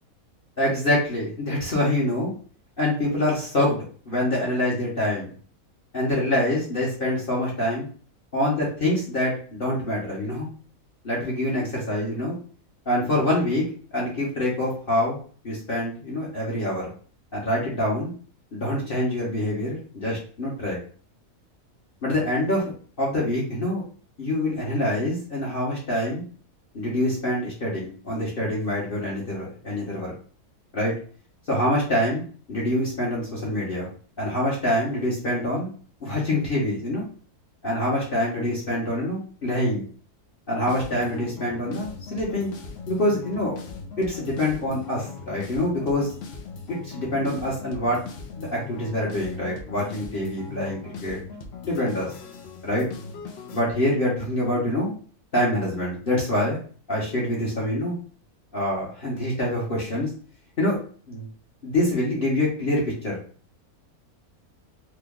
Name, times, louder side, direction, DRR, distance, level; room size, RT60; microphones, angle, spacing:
voice 1, 0.6-2.3 2.8-3.8 4.1-5.3 5.9-7.9 8.3-10.5 11.0-12.3 12.9-13.6 13.9-15.2 15.4-16.9 17.3-18.1 18.5-20.8 22.0-22.6 23.0-23.8 24.2-26.2 26.7-30.1 30.7-30.9 31.5-32.2 32.5-33.9 34.2-35.7 36.0-37.0 37.6-39.9 40.5-42.5 42.9-43.6 44.0-46.1 46.7-48.0 48.4-51.2 51.6-52.1 52.6-52.9 53.5-54.9 55.3-56.6 56.9-58.0 58.5-60.1 60.6-60.8 61.1-61.3 61.6-63.2, left 1 dB, 40° left, -5 dB, 1.1 m, -25 dB
sound 1, 40.7-53.6, left 4 dB, 65° left, 0.6 m, -39 dB
3.0 x 2.3 x 3.6 m, 0.42 s
omnidirectional pair, 1.5 m